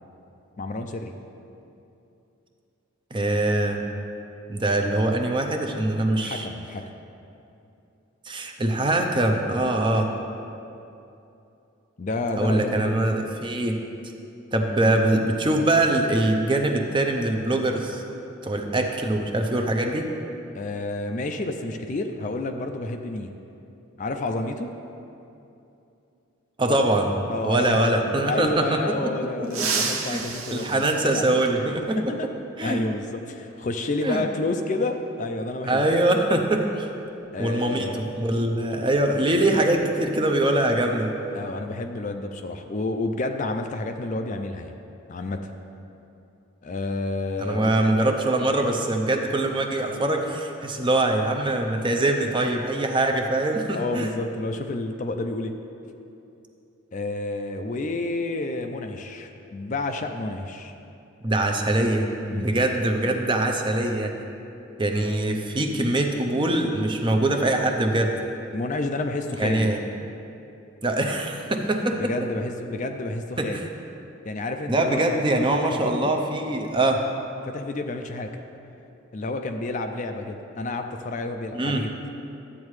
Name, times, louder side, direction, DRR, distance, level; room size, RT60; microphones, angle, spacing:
voice 1, 0.6-1.1 6.2-6.9 12.0-12.9 20.5-23.3 24.0-24.7 27.3-27.9 28.3-31.4 32.1-32.3 32.6-35.8 37.3-38.0 41.3-44.7 45.1-45.5 46.6-47.9 53.7-55.5 56.9-60.7 62.3-62.6 68.5-69.7 72.0-73.6 74.2-76.1 77.4-78.4 79.1-81.9, left 2 dB, 35° left, 5 dB, 0.4 m, -30 dB
voice 2, 3.1-3.9 4.5-6.5 8.2-10.1 12.4-13.8 14.5-18.0 18.4-20.1 26.6-27.2 27.4-30.2 30.5-32.0 32.6-32.8 34.0-34.2 35.6-36.9 37.4-41.1 47.4-54.1 61.2-64.2 64.8-68.1 69.4-69.8 70.8-72.1 73.4-73.7 74.7-77.0 81.5-81.8, right 1 dB, 20° right, 3 dB, 0.6 m, -23 dB
sound 1, 29.4-31.9 33.5-33.6 34.8-34.9 36.6-36.7 37.1-37.3 37.8-40.0 40.2-40.5 40.9-41.3, right 5 dB, 80° right, 0.9 m, -33 dB
12.5 x 8.3 x 3.2 m, 2.8 s
head